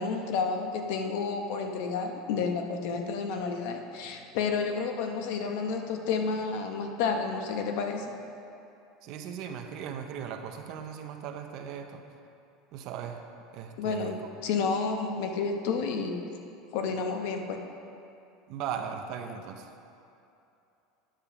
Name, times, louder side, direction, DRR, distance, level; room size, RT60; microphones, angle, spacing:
voice 1, 0.0-8.2 13.8-16.3 16.7-17.6, left 5 dB, 60° left, 4 dB, 0.9 m, -30 dB
voice 2, 9.0-12.0 12.7-13.2 13.5-14.1 18.5-19.7, right 8 dB, 45° right, 6 dB, 0.6 m, -38 dB
10.0 x 5.4 x 5.9 m, 2.8 s
supercardioid pair, 165°, 0 cm